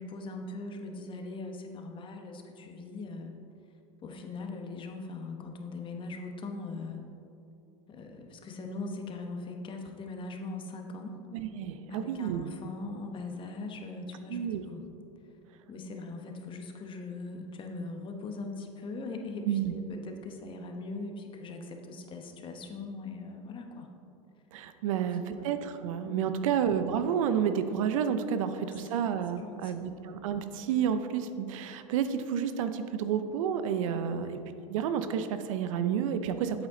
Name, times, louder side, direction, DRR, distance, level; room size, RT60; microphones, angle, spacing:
voice 1, 0.0-3.3 4.0-7.0 7.9-11.2 11.9-14.8 15.7-23.9 24.9-25.5 26.0-26.6 28.5-29.9 33.8-34.3, left 3 dB, 30° left, 3 dB, 1.1 m, -41 dB
voice 2, 11.3-12.5 14.3-14.6 19.5-19.7 24.5-34.4 34.7-36.7, right 8 dB, 80° right, 10 dB, 0.6 m, -30 dB
8.3 x 8.1 x 3.9 m, 2.7 s
supercardioid pair, 120°, 17 cm